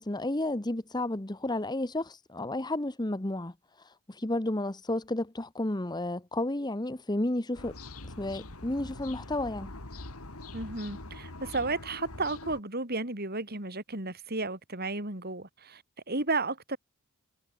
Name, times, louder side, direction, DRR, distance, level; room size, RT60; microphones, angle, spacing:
voice 1, 0.0-3.5 4.1-7.8 8.2-9.7, left 1 dB, 20° left, 1.0 m, -32 dB
sound 1, 7.6-12.6, left 2 dB, 85° left, 3.1 m, -43 dB
voice 2, 10.5-16.8, right 3 dB, 45° right, 4.3 m, -33 dB
head